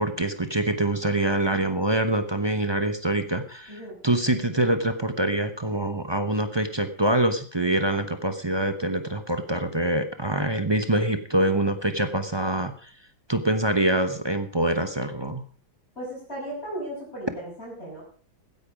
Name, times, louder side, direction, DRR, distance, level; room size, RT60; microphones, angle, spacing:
voice 1, 0.0-12.9 13.3-15.4, right 1 dB, 25° right, 9 dB, 0.6 m, -25 dB
voice 2, 16.0-18.0, right 1 dB, 30° left, -8 dB, 6.2 m, -36 dB
16.0 x 9.9 x 5.0 m, 0.42 s
omnidirectional pair, 2.1 m